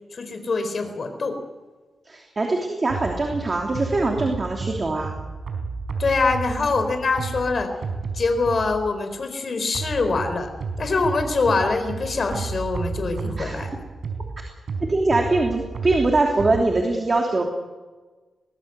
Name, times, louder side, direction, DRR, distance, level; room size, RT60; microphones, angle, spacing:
voice 1, 0.1-1.4 6.0-7.7 8.1-10.5 10.8-13.8, left 3 dB, 45° left, 7 dB, 4.3 m, -24 dB
voice 2, 2.1-5.1 13.4-13.7 14.8-17.4, right 2 dB, 30° right, 2 dB, 3.0 m, -22 dB
sound 1, 2.9-9.0 9.7-16.6, right 4 dB, 60° right, 4.4 m, -32 dB
23.0 x 19.0 x 8.0 m, 1.3 s
wide cardioid pair, 115°, 0 cm